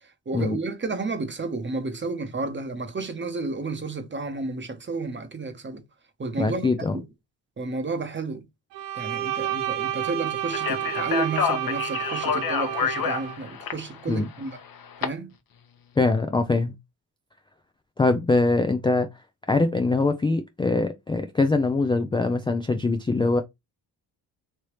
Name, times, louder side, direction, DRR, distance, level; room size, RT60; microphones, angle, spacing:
voice 1, 0.3-5.8 6.2-6.7 6.9-7.0 7.6-8.4 8.9-14.6 15.0-15.3, right 3 dB, 25° right, 0.9 m, -31 dB
voice 2, 6.4-7.0 14.1-14.3 16.0-16.7 18.0-19.1 19.5-23.4, left 3 dB, 10° left, 0.4 m, -23 dB
Bowed string instrument, 8.7-13.4, right 11 dB, 75° right, 0.6 m, -30 dB
Speech, 10.5-15.1, left 7 dB, 50° left, 0.9 m, -28 dB
3.3 x 2.7 x 3.1 m
supercardioid pair, 60°, 43 cm